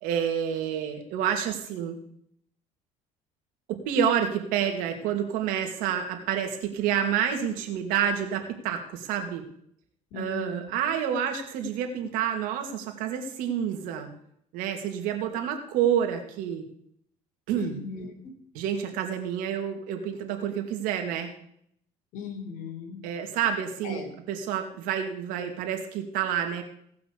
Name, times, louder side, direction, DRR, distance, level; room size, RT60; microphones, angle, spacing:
voice 1, 0.0-2.0 3.7-9.4 10.1-14.1 14.5-16.6 17.5-17.8 18.5-21.3 23.0-26.6, right 8 dB, 80° right, 4 dB, 2.5 m, -28 dB
voice 2, 10.1-10.7 17.5-18.3 22.1-23.0 23.8-24.1, left 5 dB, 70° left, 4 dB, 3.8 m, -38 dB
18.0 x 6.0 x 6.8 m, 0.70 s
cardioid pair, 115°, 14 cm